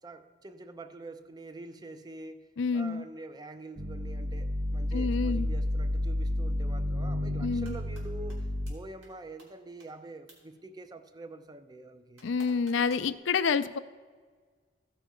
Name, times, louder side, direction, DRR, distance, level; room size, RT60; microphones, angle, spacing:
voice 1, 0.0-2.5 2.7-12.2, right 2 dB, 20° right, 10 dB, 0.4 m, -46 dB
voice 2, 2.6-3.0 4.9-5.5 7.4-7.7 12.2-13.8, left 5 dB, 75° left, 13 dB, 0.4 m, -28 dB
sound 1, 3.8-8.7, left 1 dB, 60° right, 0.8 m, -31 dB
sound 2, 7.4-8.0 8.3-8.4 8.7-8.8 9.0-9.1 9.4-9.5 9.8-9.9 10.3-10.4 12.2-13.1, right 2 dB, 90° right, 3.0 m, -53 dB
15.0 x 5.6 x 5.0 m, 1.5 s
head